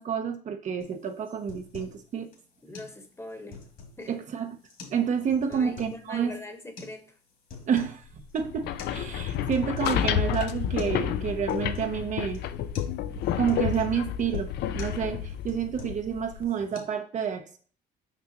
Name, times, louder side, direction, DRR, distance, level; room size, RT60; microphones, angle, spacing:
voice 1, 0.0-2.3 4.1-4.6 4.9-6.4 7.7-12.4 13.4-17.6, right 7 dB, 45° right, 0.7 m, -29 dB
sound 1, 0.8-1.0 1.3-2.0 2.3-2.4 2.7-2.9 3.3-4.1 4.7-5.0 5.3-6.0 6.8-6.9 7.3-8.0 8.3-8.4 8.8-9.0 9.3-10.0 10.3-10.4 10.8-11.0 11.3-12.0 12.3-12.5 12.8-12.9 13.2-14.0 14.3-14.5 14.8-15.0 15.3-16.1 16.4-16.8, left 4 dB, 55° left, 2.3 m, -45 dB
voice 2, 2.6-3.6 4.0-4.1 5.5-7.0, left 1 dB, 15° left, 1.1 m, -42 dB
sound 2, 8.4-16.4, left 10 dB, 75° left, 0.5 m, -30 dB
6.0 x 5.4 x 2.9 m
cardioid pair, 110°, 17 cm